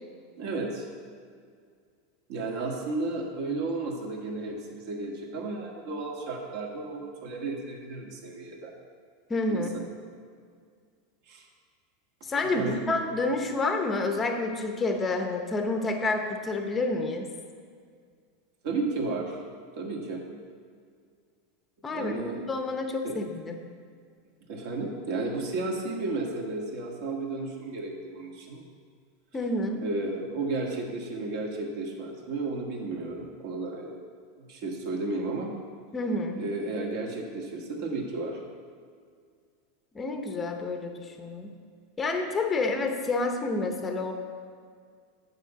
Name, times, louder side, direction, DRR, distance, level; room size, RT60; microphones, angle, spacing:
voice 1, 0.4-0.9 2.3-8.7 9.5-9.7 11.3-11.5 12.4-12.8 18.6-19.4 19.8-20.2 21.9-22.4 23.0-23.2 24.5-28.6 29.8-33.9 34.4-35.5 36.4-38.4, right 3 dB, 55° right, 0 dB, 1.6 m, -33 dB
voice 2, 9.3-9.7 12.3-17.3 21.8-23.6 29.3-29.8 35.9-36.4 39.9-41.5 42.0-44.1, left 2 dB, 15° left, 4 dB, 0.8 m, -29 dB
9.1 x 4.3 x 6.8 m, 2.1 s
supercardioid pair, 155°, 0 cm